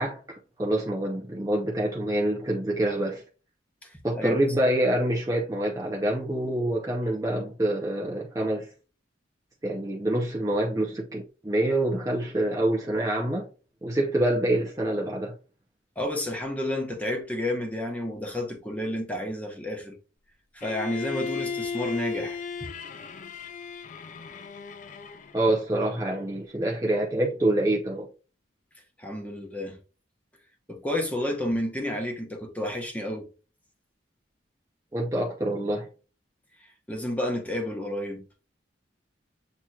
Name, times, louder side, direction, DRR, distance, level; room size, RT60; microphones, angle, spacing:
voice 1, 0.0-3.2 4.0-8.7 9.6-13.5 13.8-15.3 25.3-28.1 34.9-35.9, right 1 dB, 15° right, 0.6 m, -26 dB
voice 2, 16.0-20.0 20.5-22.4 29.0-29.8 30.7-33.3 36.9-38.2, left 1 dB, 10° left, 0.9 m, -30 dB
Bowed string instrument, 20.6-25.5, left 5 dB, 40° left, 0.4 m, -35 dB
7.7 x 2.9 x 2.3 m
head